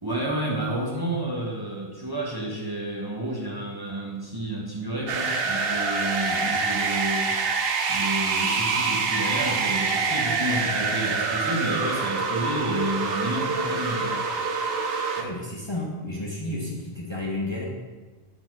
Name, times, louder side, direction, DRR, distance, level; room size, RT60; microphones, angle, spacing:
voice 1, 0.0-7.3 7.9-14.3, right 1 dB, 20° right, -4 dB, 1.2 m, -30 dB
sound 1, 5.1-15.2, right 4 dB, 65° right, 0.9 m, -26 dB
voice 2, 15.2-17.7, left 1 dB, 25° left, -4 dB, 1.2 m, -31 dB
9.7 x 4.1 x 4.7 m, 1.3 s
omnidirectional pair, 1.1 m